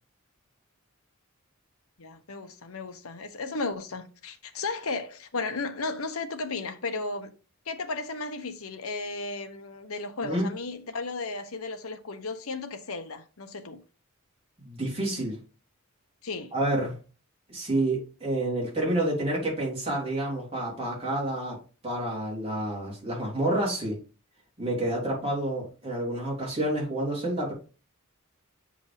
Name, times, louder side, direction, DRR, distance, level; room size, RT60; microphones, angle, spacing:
voice 1, 2.0-7.3 7.6-13.8 16.2-16.5, left 3 dB, 75° left, 1.0 m, -34 dB
voice 2, 14.6-15.4 16.5-16.9 17.5-21.6 21.8-24.0 24.6-27.5, right 1 dB, 25° right, 3.4 m, -29 dB
8.2 x 5.1 x 3.4 m
head